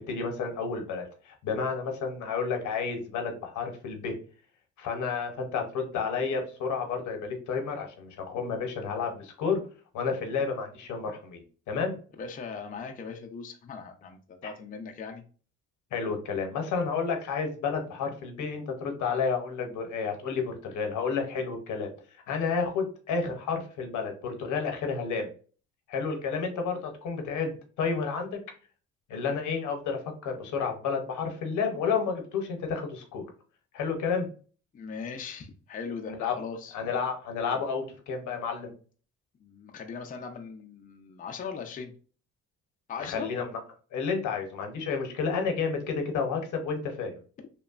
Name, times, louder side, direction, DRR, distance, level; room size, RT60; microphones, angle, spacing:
voice 1, 0.1-1.0 1.4-4.1 4.8-9.6 9.9-11.4 11.7-11.9 14.4-14.5 15.9-21.9 22.3-25.3 25.9-28.4 29.1-33.2 33.7-34.3 36.1-36.3 36.7-38.7 43.0-43.6 43.9-47.1, left 5 dB, 75° left, 4 dB, 0.8 m, -31 dB
voice 2, 12.2-15.2 34.7-36.7 39.4-41.9 42.9-43.3, left 5 dB, 30° left, 3 dB, 0.4 m, -39 dB
2.9 x 2.2 x 2.3 m, 0.39 s
cardioid pair, 90°, 30 cm